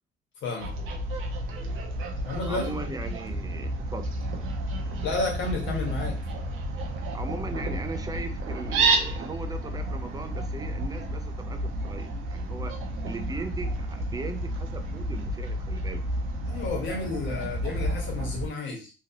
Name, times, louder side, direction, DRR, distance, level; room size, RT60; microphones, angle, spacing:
voice 1, 0.4-0.7 2.2-2.9 5.0-6.1 16.5-18.9, left 3 dB, 75° left, 0 dB, 1.4 m, -31 dB
Fowl, 0.6-18.5, right 1 dB, 90° right, 0.7 m, -31 dB
voice 2, 2.5-4.1 7.1-12.8 13.0-16.1, right 3 dB, 20° right, 8 dB, 0.5 m, -38 dB
3.0 x 2.7 x 2.8 m, 0.33 s
cardioid pair, 90°, 20 cm